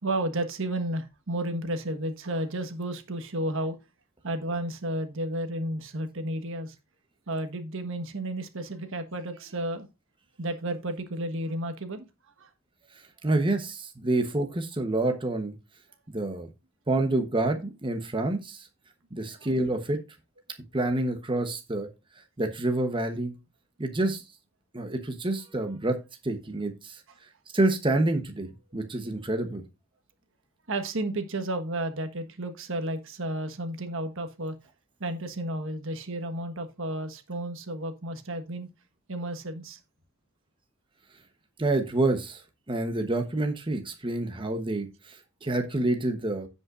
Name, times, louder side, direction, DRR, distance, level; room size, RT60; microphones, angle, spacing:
voice 1, 0.0-3.8 4.2-6.7 7.3-9.9 10.4-12.0 12.4-12.5 19.3-19.4 30.7-34.5 35.0-38.7 39.1-39.8, right 1 dB, 65° right, 1.4 m, -32 dB
voice 2, 13.2-15.5 16.1-16.5 16.9-18.7 19.1-20.0 20.7-21.9 22.4-23.3 23.8-24.2 24.7-26.0 26.2-27.0 27.5-29.6 41.6-42.4 42.7-46.5, right 2 dB, 25° right, 1.0 m, -28 dB
16.0 x 5.4 x 2.5 m
head